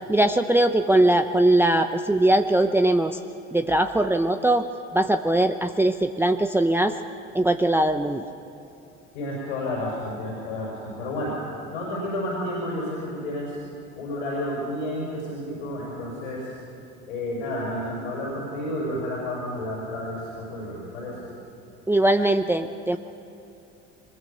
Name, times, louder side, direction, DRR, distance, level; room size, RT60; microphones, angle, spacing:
voice 1, 0.0-3.2 3.5-4.7 4.9-6.9 7.3-8.3 21.9-23.0, right 1 dB, 5° right, 6 dB, 0.7 m, -21 dB
voice 2, 9.1-11.4 11.7-13.6 14.0-16.5 17.1-21.3, left 1 dB, 80° left, -3 dB, 5.7 m, -31 dB
23.0 x 21.0 x 6.9 m, 2.8 s
hypercardioid pair, 70°, 37 cm